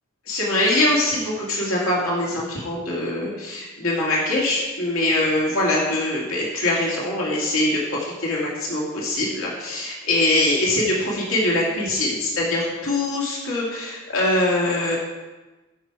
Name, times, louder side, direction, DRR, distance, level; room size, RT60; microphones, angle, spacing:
voice 1, 0.3-15.0, left 1 dB, 85° left, -4 dB, 2.4 m, -23 dB
12.5 x 6.1 x 4.7 m, 1.2 s
head